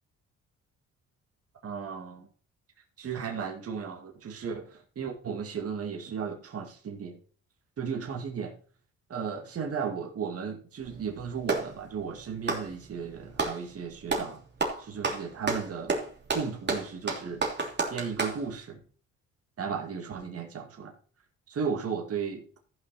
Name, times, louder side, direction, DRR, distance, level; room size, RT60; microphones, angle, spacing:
voice 1, 1.6-2.3 3.0-7.2 7.8-8.5 9.1-14.4 14.8-16.0 16.3-17.4 17.9-18.8 19.6-20.9 21.5-22.4, right 6 dB, 50° right, 2 dB, 2.2 m, -35 dB
Clapping, 10.8-11.7 12.4-13.6 14.1-14.3 14.6-18.4, right 3 dB, 35° right, 3.1 m, -30 dB
14.0 x 6.0 x 4.2 m, 0.41 s
cardioid pair, 90°, 30 cm